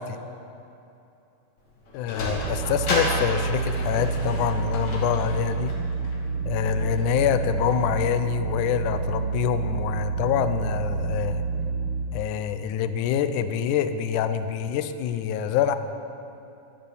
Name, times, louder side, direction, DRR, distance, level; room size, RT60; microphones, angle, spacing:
Sliding door, 1.6-8.2, left 1 dB, 50° left, 3.7 m, -34 dB
voice 1, 1.9-5.7 6.5-11.4 12.1-15.8, left 9 dB, 85° left, 10 dB, 1.7 m, -26 dB
sound 1, 2.4-12.1, right 5 dB, 70° right, 2.0 m, -28 dB
12.5 x 12.0 x 7.1 m, 2.8 s
omnidirectional pair, 4.4 m